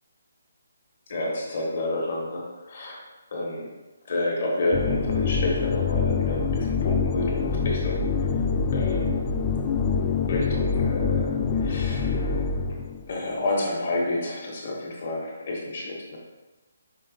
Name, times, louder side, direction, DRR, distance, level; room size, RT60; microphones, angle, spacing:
voice 1, 1.1-3.0 3.3-3.7 4.1-8.1 8.7-9.3 10.3-12.5 13.1-16.2, left 2 dB, 35° left, -3 dB, 1.4 m, -29 dB
sound 1, 4.7-13.0, left 5 dB, 15° left, 0.3 m, -25 dB
5.2 x 3.3 x 5.4 m, 1.1 s
hypercardioid pair, 175°, 0 cm